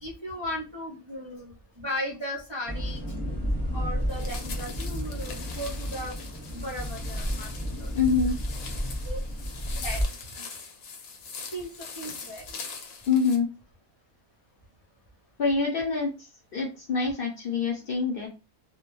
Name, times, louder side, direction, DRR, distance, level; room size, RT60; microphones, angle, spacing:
voice 1, 0.0-3.0 3.7-6.2 6.5-7.5 7.8-7.9 9.0-9.2 9.7-10.0 11.5-12.6, equal, 40° right, -4 dB, 0.4 m, -36 dB
sound 1, 2.7-10.0, equal, 20° left, 0.8 m, -32 dB
sound 2, 4.1-13.4, left 5 dB, 80° left, 1.1 m, -42 dB
voice 2, 7.9-8.4 13.1-13.5 15.4-18.3, left 5 dB, 55° left, 1 dB, 0.7 m, -26 dB
2.2 x 2.2 x 3.0 m, 0.29 s
omnidirectional pair, 1.4 m